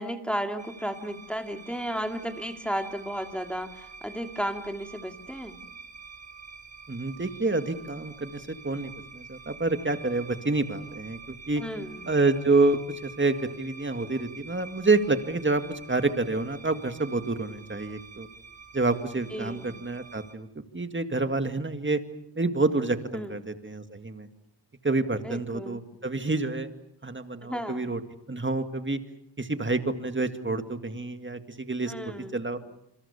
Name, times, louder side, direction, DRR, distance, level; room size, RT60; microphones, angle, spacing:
voice 1, 0.0-5.6 11.6-12.1 19.3-19.8 23.1-23.4 25.2-25.8 27.4-27.9 31.9-32.4, equal, ahead, 5 dB, 2.3 m, -34 dB
sound 1, 0.6-20.3, right 5 dB, 75° right, 2.1 m, -47 dB
voice 2, 6.9-11.6 12.1-18.3 18.7-20.5 20.7-22.0 22.4-24.3 24.8-26.7 27.0-28.0 28.3-29.0 29.4-31.9 32.3-32.6, right 3 dB, 25° right, 8 dB, 2.0 m, -28 dB
27.0 x 26.0 x 7.1 m, 0.78 s
wide cardioid pair, 95°, 43 cm